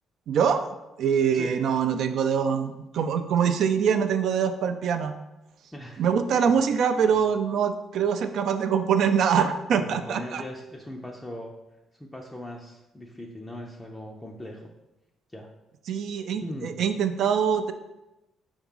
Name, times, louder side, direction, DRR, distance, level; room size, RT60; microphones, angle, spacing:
voice 1, 0.3-0.6 1.0-5.1 6.0-10.4 15.9-17.7, right 7 dB, 60° right, 8 dB, 0.4 m, -24 dB
voice 2, 5.7-6.0 6.5-6.6 9.7-11.5 12.0-14.7 15.3-15.5 16.4-16.8, left 1 dB, 10° left, -1 dB, 0.5 m, -39 dB
4.8 x 3.5 x 5.5 m, 0.98 s
cardioid pair, 150°, 0 cm